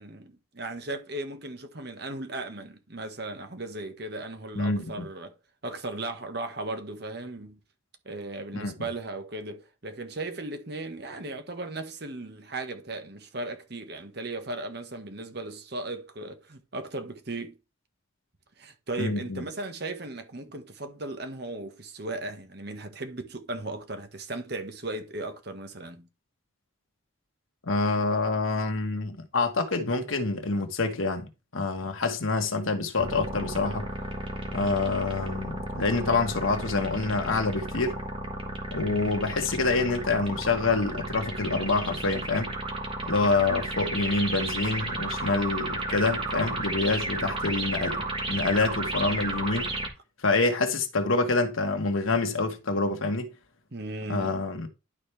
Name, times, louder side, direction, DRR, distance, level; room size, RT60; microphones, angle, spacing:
voice 1, 0.0-5.3 5.6-7.6 8.0-17.6 18.6-26.1 53.7-54.4, right 2 dB, 55° right, 1.3 m, -37 dB
voice 2, 4.5-5.1 8.5-8.7 19.0-19.4 27.6-33.9 34.5-38.0 38.7-42.5 43.0-49.7 50.2-53.3 54.1-54.7, left 3 dB, 85° left, 1.4 m, -27 dB
sound 1, 33.0-49.9, right 2 dB, 25° right, 1.4 m, -33 dB
11.5 x 4.4 x 3.4 m
head